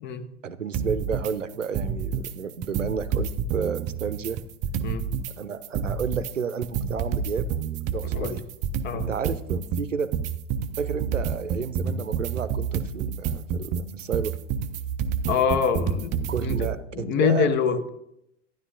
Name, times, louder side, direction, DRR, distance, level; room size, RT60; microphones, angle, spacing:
voice 1, 0.4-4.4 5.4-7.5 7.9-8.4 8.9-10.1 10.8-14.4 16.3-17.8, right 6 dB, 90° right, 15 dB, 0.6 m, -31 dB
sound 1, 0.7-1.3 1.6-2.3 2.6-5.3 5.6-16.7, right 7 dB, 20° right, 0.4 m, -29 dB
voice 2, 15.3-17.9, left 6 dB, 30° left, 9 dB, 0.9 m, -25 dB
12.5 x 10.0 x 2.6 m, 0.79 s
figure-of-eight pair, 95°, 37 cm